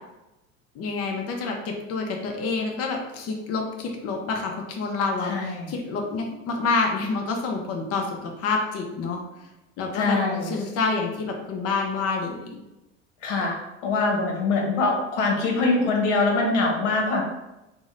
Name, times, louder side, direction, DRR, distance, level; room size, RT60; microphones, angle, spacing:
voice 1, 0.7-9.2 9.8-12.6, left 4 dB, 40° left, 1 dB, 0.6 m, -28 dB
voice 2, 5.2-5.7 9.9-10.5 13.2-13.6 13.8-17.2, left 3 dB, 85° left, 0 dB, 0.9 m, -23 dB
2.8 x 2.1 x 3.7 m, 0.96 s
supercardioid pair, 95°, 36 cm